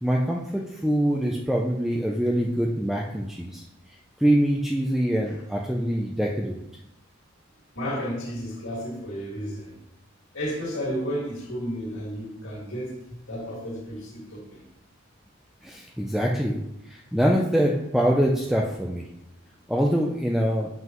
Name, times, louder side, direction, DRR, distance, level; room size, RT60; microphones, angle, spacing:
voice 1, 0.0-3.7 4.2-6.6 15.6-16.6 16.8-19.1 19.7-20.7, equal, ahead, -1 dB, 0.4 m, -24 dB
voice 2, 7.8-9.8 10.3-12.9 13.3-14.6, equal, 70° left, -4 dB, 2.2 m, -32 dB
7.6 x 5.6 x 3.0 m, 0.86 s
head